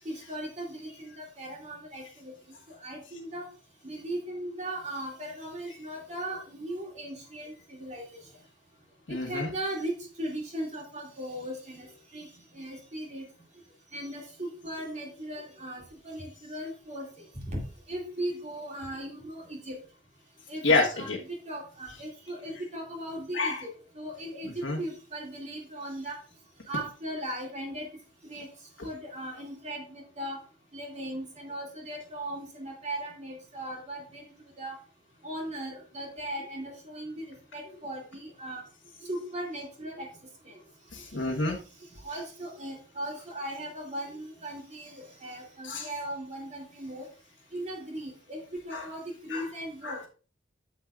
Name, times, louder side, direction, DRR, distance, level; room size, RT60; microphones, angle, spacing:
voice 1, 0.0-2.3 2.8-3.4 3.8-8.0 9.3-11.9 12.1-12.3 12.5-13.2 13.9-17.1 17.3-17.6 17.9-19.8 20.5-23.7 23.9-26.2 26.7-27.9 28.2-28.5 28.8-30.4 30.7-34.3 34.6-34.8 35.2-38.6 39.0-40.1 40.5-40.6 42.0-47.1 47.5-48.4 48.7-50.0, right 1 dB, 40° right, 0 dB, 2.3 m, -38 dB
voice 2, 9.1-9.5 16.4-16.5 20.6-21.2 21.9-22.0 22.5-22.6 23.3-23.7 24.4-24.8 28.8-28.9 40.9-41.6 42.1-42.2 45.6-45.9 48.7-48.9 49.3-49.6 49.8-50.1, left 3 dB, 70° left, -1 dB, 1.3 m, -30 dB
9.2 x 7.3 x 2.4 m, 0.36 s
head